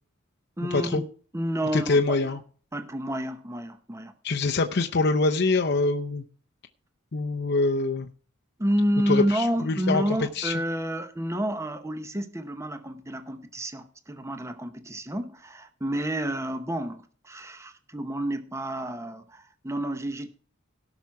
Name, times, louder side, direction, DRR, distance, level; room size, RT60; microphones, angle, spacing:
voice 1, 0.6-1.0 1.3-2.2 2.7-4.1 8.6-20.3, equal, 15° right, 0.8 m, -29 dB
voice 2, 1.7-2.4 4.2-6.2 7.1-8.1 9.1-10.0 10.4-10.5, left 3 dB, 55° left, 0.7 m, -24 dB
17.5 x 6.1 x 4.7 m
head